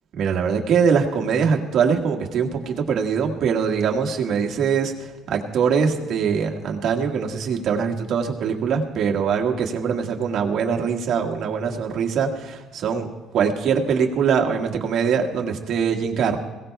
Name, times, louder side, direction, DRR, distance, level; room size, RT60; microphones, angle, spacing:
voice 1, 0.1-4.9 5.3-13.1 13.3-16.4, right 6 dB, 65° right, 1 dB, 1.6 m, -22 dB
22.5 x 17.0 x 2.3 m, 1.2 s
cardioid pair, 90°, 0 cm